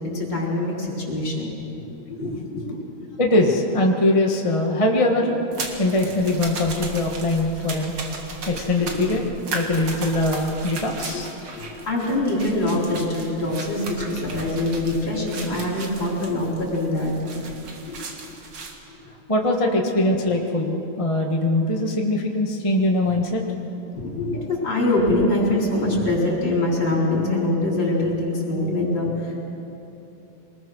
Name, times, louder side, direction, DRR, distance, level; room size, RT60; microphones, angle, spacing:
voice 1, 0.0-1.5 2.1-2.8 9.1-9.2 11.6-17.3 17.9-18.0 18.9-19.0 23.9-29.4, left 1 dB, 60° left, -3 dB, 5.3 m, -24 dB
voice 2, 3.2-5.4 5.8-7.9 8.5-9.2 9.5-11.3 19.3-23.4, left 1 dB, 20° left, 0 dB, 1.3 m, -22 dB
sound 1, 5.5-18.8, right 3 dB, 85° right, 2.8 m, -36 dB
24.5 x 20.0 x 6.3 m, 2.9 s
omnidirectional pair, 2.3 m